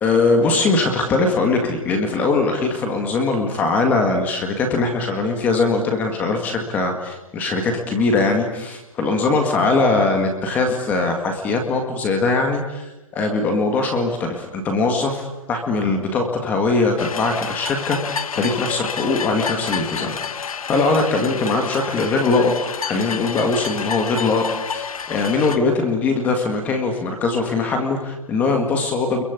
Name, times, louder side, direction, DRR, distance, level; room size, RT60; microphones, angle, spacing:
voice 1, 0.0-22.5 22.8-29.2, left 3 dB, 10° left, 5 dB, 1.9 m, -21 dB
sound 1, 17.0-25.6, left 6 dB, 90° left, 1.7 m, -29 dB
30.0 x 23.0 x 8.3 m, 0.98 s
hypercardioid pair, 180°, 18 cm